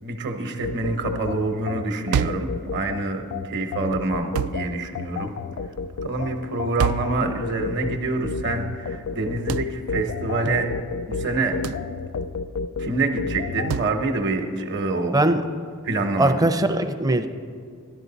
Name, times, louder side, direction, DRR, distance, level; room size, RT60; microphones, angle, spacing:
voice 1, 0.0-5.3 6.0-10.7 11.1-11.6 12.8-15.2 15.8-16.4, right 3 dB, 55° right, 5 dB, 0.9 m, -26 dB
sound 1, 0.6-13.8, left 5 dB, 60° left, 0.3 m, -31 dB
sound 2, 2.1-2.5 4.3-4.7 6.8-7.2 9.5-9.7 11.6-11.9 13.7-14.0, right 7 dB, 85° right, 0.3 m, -26 dB
voice 2, 16.2-17.3, right 1 dB, 15° right, 9 dB, 0.5 m, -20 dB
13.0 x 11.0 x 4.0 m, 2.1 s
head